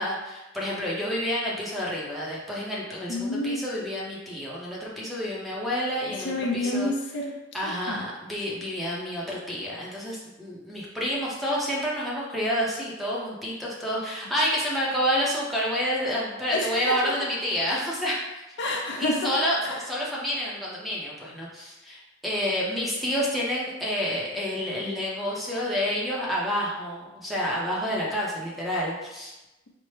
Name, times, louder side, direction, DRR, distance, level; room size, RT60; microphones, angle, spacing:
voice 1, 0.0-6.9 7.5-18.4 19.0-29.3, equal, ahead, -6 dB, 0.6 m, -29 dB
voice 2, 3.1-3.7 6.2-8.0 16.5-17.2 18.6-19.3 19.6-19.7, left 1 dB, 60° left, 0 dB, 0.5 m, -29 dB
4.3 x 2.0 x 3.1 m, 1.0 s
head